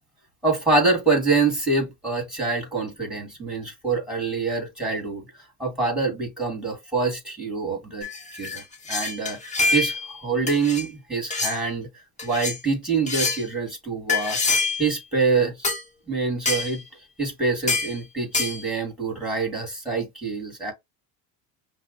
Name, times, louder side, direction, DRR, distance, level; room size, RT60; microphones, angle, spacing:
voice 1, 0.4-8.1 8.4-8.6 8.9-11.9 12.2-14.4 14.8-15.5 16.1-16.8 17.2-20.7, right 4 dB, ahead, 2.1 m, -25 dB
sound 1, 8.0-10.1 10.5-10.9 11.3-11.6 12.2-12.6 13.1-13.4 14.1-14.9 15.6-15.8 16.5-16.8 17.7-17.9 18.3-18.6, left 3 dB, 15° left, 0.9 m, -25 dB
5.6 x 2.1 x 2.6 m
cardioid pair, 125°, 41 cm